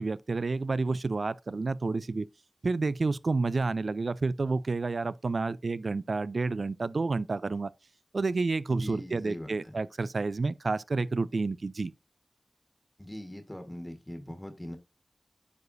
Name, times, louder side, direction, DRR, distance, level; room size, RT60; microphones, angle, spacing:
voice 1, 0.0-2.3 2.6-7.7 8.1-11.9, right 3 dB, 75° right, 0.3 m, -30 dB
voice 2, 8.7-9.8 13.0-14.8, left 1 dB, 20° left, 1.4 m, -41 dB
9.4 x 4.9 x 2.6 m
wide cardioid pair, 45°, 0 cm